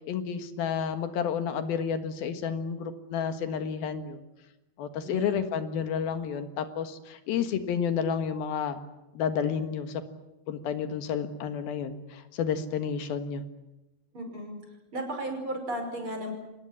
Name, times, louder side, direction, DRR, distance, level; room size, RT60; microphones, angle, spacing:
voice 1, 0.1-4.2 4.8-8.8 9.2-10.0 10.5-13.4, left 7 dB, 85° left, 8 dB, 3.4 m, -30 dB
voice 2, 5.0-5.4 14.1-14.6 14.9-16.3, right 1 dB, 35° right, 4 dB, 6.2 m, -34 dB
26.0 x 19.0 x 9.8 m, 1.0 s
omnidirectional pair, 4.2 m